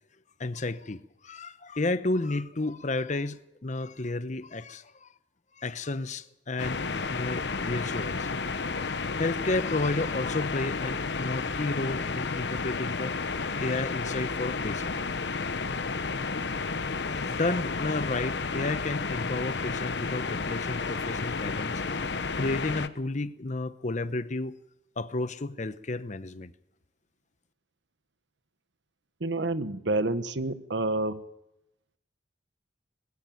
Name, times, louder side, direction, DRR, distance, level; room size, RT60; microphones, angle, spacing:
voice 1, 0.4-5.1 5.6-8.4 8.7-15.7 17.1-24.6 25.0-26.5, left 2 dB, 40° left, 0.9 m, -32 dB
sound 1, 6.6-22.9, left 4 dB, 65° left, 1.0 m, -32 dB
voice 2, 29.2-31.2, right 2 dB, 75° right, 1.2 m, -28 dB
20.5 x 14.5 x 9.1 m
head